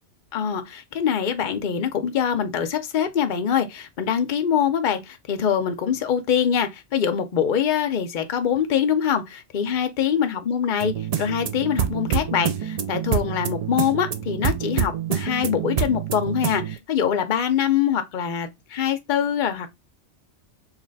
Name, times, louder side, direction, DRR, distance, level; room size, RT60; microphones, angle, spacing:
voice 1, 0.3-19.7, left 8 dB, 50° left, 0.7 m, -24 dB
sound 1, 10.8-16.8, right 8 dB, 65° right, 0.3 m, -27 dB
3.2 x 2.9 x 3.9 m
omnidirectional pair, 1.2 m